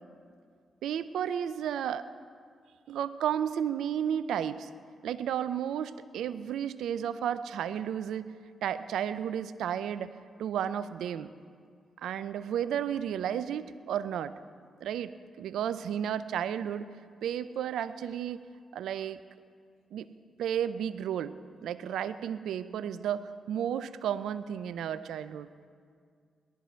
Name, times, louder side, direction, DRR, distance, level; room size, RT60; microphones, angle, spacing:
voice 1, 0.8-2.1 2.9-4.7 5.0-8.3 8.6-10.1 10.4-11.3 12.0-14.3 14.8-15.1 15.4-16.9 17.2-18.4 18.7-19.2 19.9-20.1 20.4-21.3 21.6-25.5, right 9 dB, 75° right, 13 dB, 0.5 m, -32 dB
18.5 x 12.5 x 4.5 m, 2.1 s
hypercardioid pair, 40°, 0 cm